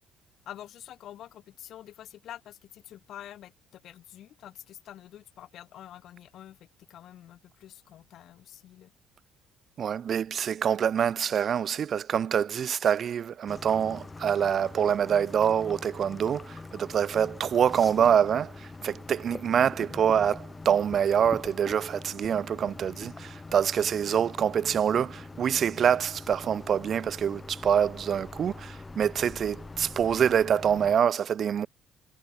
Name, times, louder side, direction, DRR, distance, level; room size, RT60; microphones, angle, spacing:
voice 1, 0.5-6.6 6.9-8.9, left 11 dB, 65° left, 2.0 m, -47 dB
voice 2, 9.8-31.7, right 8 dB, 55° right, 0.5 m, -26 dB
sound 1, 13.5-30.9, left 3 dB, 20° left, 2.9 m, -43 dB
hypercardioid pair, 60°, 0 cm